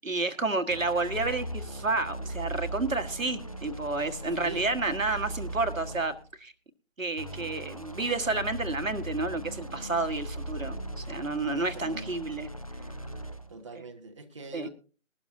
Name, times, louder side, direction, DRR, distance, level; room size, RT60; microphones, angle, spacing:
voice 1, 0.0-6.5 7.0-12.5 14.5-14.7, right 3 dB, 75° right, 8 dB, 1.6 m, -30 dB
sound 1, 0.7-6.3 7.2-13.6, right 1 dB, 30° left, 0.5 m, -39 dB
voice 2, 4.3-4.7 11.7-12.1 13.5-14.7, right 3 dB, 25° right, 5 dB, 0.9 m, -42 dB
20.5 x 12.0 x 2.6 m, 0.34 s
figure-of-eight pair, 150°, 40 cm